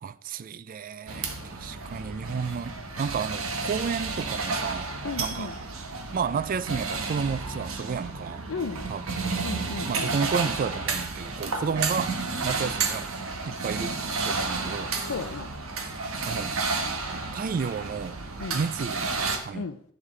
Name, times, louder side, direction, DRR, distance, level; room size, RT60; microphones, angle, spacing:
voice 1, 0.0-5.6 6.1-8.5 8.9-9.6 9.9-13.1 13.4-14.9 16.3-16.5 17.3-18.2 18.5-19.7, right 6 dB, 40° right, 0.3 m, -32 dB
Construction sounds, 1.1-19.4, right 4 dB, 75° right, 1.3 m, -31 dB
voice 2, 5.0-5.5 8.5-8.8 9.4-10.1 15.0-15.5 18.4-18.6 19.5-19.8, left 4 dB, 75° left, 0.5 m, -34 dB
11.0 x 7.4 x 3.2 m
head